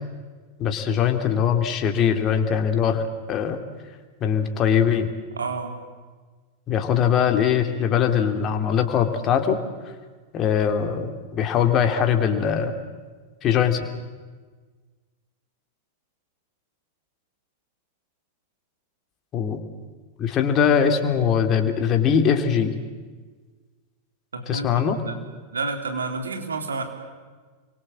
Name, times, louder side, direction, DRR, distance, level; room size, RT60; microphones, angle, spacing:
voice 1, 0.6-3.6 4.2-5.1 6.7-9.6 10.3-12.7 13.4-13.8 19.3-19.6 20.2-22.7 24.5-25.0, left 7 dB, 30° left, 6 dB, 3.0 m, -21 dB
voice 2, 5.4-5.8 24.3-25.2 25.5-26.8, right 4 dB, 70° right, 4 dB, 3.8 m, -30 dB
29.5 x 24.0 x 7.7 m, 1.4 s
figure-of-eight pair, 90°, 0 cm